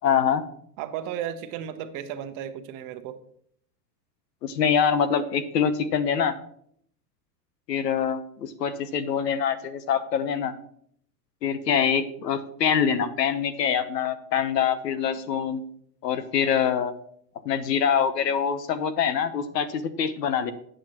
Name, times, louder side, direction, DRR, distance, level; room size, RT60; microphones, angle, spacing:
voice 1, 0.0-0.4 4.4-6.3 7.7-10.5 11.4-15.6 16.0-16.9 17.4-20.5, left 7 dB, 90° left, 13 dB, 1.0 m, -24 dB
voice 2, 0.8-3.2 14.9-15.0, right 10 dB, 40° right, 10 dB, 0.8 m, -34 dB
8.9 x 7.5 x 2.9 m, 0.65 s
hypercardioid pair, 120°, 48 cm